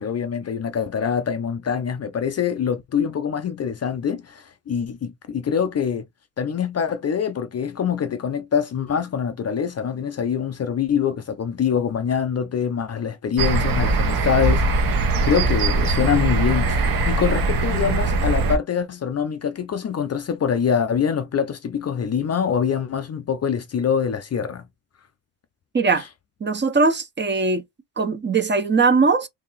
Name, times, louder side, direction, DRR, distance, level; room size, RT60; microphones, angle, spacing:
voice 1, 0.0-6.0 6.4-24.6, left 7 dB, 35° left, 0.5 m, -24 dB
sound 1, 13.4-18.6, right 2 dB, 50° right, 0.9 m, -21 dB
voice 2, 25.7-26.0 26.4-27.6 28.0-29.3, right 4 dB, 25° right, 0.7 m, -20 dB
2.9 x 2.7 x 3.9 m
cardioid pair, 110°, 44 cm